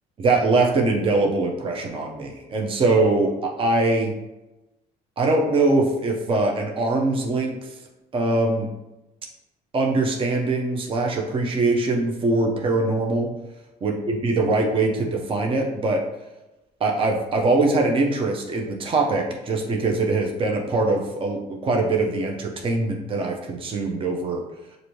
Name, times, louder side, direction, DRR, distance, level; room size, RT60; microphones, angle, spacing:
voice 1, 0.2-4.1 5.2-7.7 8.1-8.7 9.7-13.3 13.8-16.0 16.8-24.4, right 2 dB, 30° right, 1 dB, 0.6 m, -22 dB
6.5 x 2.6 x 3.0 m, 0.99 s
cardioid pair, 110°, 17 cm